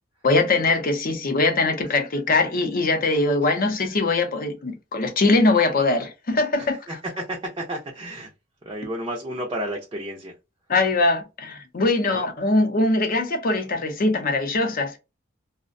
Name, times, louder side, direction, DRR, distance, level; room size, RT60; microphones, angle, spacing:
voice 1, 0.2-6.8 10.7-15.0, left 2 dB, 45° left, 0.6 m, -22 dB
voice 2, 6.6-8.3 8.6-10.3 12.0-12.2, right 1 dB, 25° right, 0.4 m, -32 dB
2.4 x 2.1 x 2.5 m
head